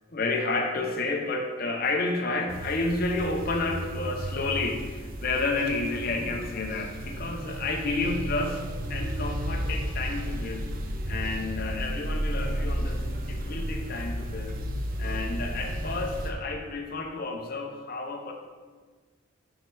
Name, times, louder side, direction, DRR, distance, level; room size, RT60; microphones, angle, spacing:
voice 1, 0.1-8.6 8.9-10.8 11.1-14.6 15.0-18.3, left 3 dB, 45° left, 2 dB, 0.6 m, -30 dB
sound 1, 2.5-16.3, right 1 dB, 40° right, 0.5 m, -33 dB
4.9 x 4.4 x 4.6 m, 1.5 s
head